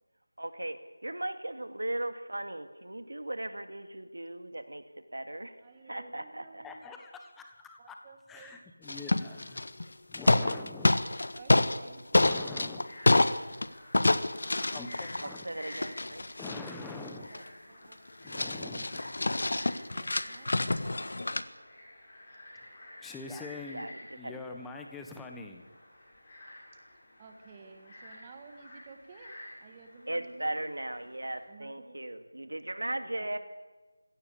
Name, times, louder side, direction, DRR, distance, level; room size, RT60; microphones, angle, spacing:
voice 1, 0.4-4.8 5.1-5.6 5.8-6.6 15.2-16.3 23.7-23.9 24.2-24.4 30.1-33.4, right 1 dB, 75° right, 9 dB, 2.3 m, -37 dB
voice 2, 5.6-6.8 7.8-8.6 11.3-12.1 17.3-18.0 19.6-21.1 27.2-29.3 29.6-30.7 31.5-32.0 33.0-33.3, right 4 dB, 15° right, 5 dB, 1.7 m, -53 dB
voice 3, 6.6-8.0 8.3-9.6 10.1-10.9 12.1-13.2 14.7-15.5 16.4-17.3 18.2-19.1 22.5-22.7 23.0-25.6, left 3 dB, 5° left, 4 dB, 1.3 m, -44 dB
sound 1, 8.9-9.8 10.1-11.8 12.1-13.7 13.9-17.5 17.9-18.0 18.3-21.4, left 2 dB, 55° left, 1.5 m, -27 dB
Frog, 12.7-31.4, left 1 dB, 30° left, 7.4 m, -51 dB
24.5 x 16.5 x 8.6 m, 1.3 s
figure-of-eight pair, 170°, 0 cm